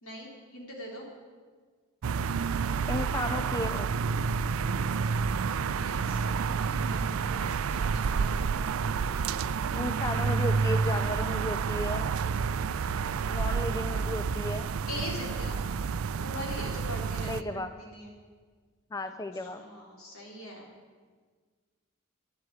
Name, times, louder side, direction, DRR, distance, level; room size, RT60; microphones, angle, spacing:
voice 1, 0.0-1.1 5.8-8.4 14.9-15.6 16.2-18.1 19.3-20.7, left 1 dB, 85° left, -1 dB, 3.5 m, -42 dB
sound 1, 2.0-17.4, right 5 dB, 80° right, 0.4 m, -29 dB
voice 2, 2.9-3.9 9.7-12.1 13.3-14.7 17.3-17.7 18.9-19.6, left 2 dB, 15° left, 9 dB, 0.3 m, -34 dB
11.0 x 8.0 x 9.2 m, 1.5 s
head